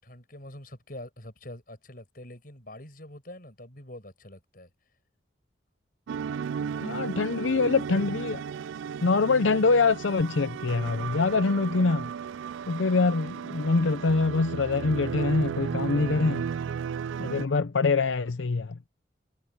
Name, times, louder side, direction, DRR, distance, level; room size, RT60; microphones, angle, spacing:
voice 1, 0.0-4.7, left 1 dB, 50° left, 7.5 m, -45 dB
sound 1, 6.1-17.5, right 7 dB, 85° right, 0.3 m, -34 dB
voice 2, 6.8-8.4 9.0-12.1 12.7-16.5 17.2-18.8, left 3 dB, 85° left, 0.7 m, -24 dB
head